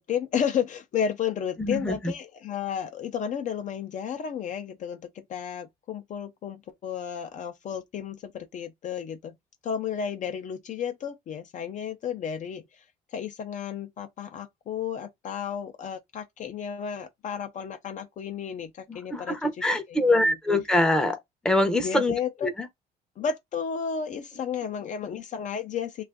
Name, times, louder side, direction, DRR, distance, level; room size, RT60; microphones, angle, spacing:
voice 1, 0.0-9.4 9.6-12.6 13.1-19.4 19.9-20.4 21.8-22.5 23.2-26.0, left 7 dB, 45° left, 0.5 m, -32 dB
voice 2, 1.6-2.1 19.1-21.2 21.4-22.1 22.4-22.7, left 1 dB, 5° left, 0.6 m, -24 dB
2.4 x 2.4 x 3.5 m
cardioid pair, 110°, 17 cm